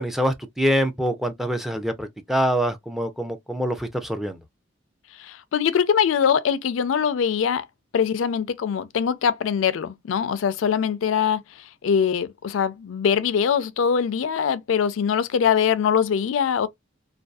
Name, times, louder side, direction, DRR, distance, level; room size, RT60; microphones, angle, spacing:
voice 1, 0.0-4.4, equal, ahead, 0.4 m, -25 dB
voice 2, 5.3-7.6 7.9-11.4 11.8-16.7, left 7 dB, 85° left, 0.4 m, -22 dB
2.5 x 2.3 x 2.2 m
head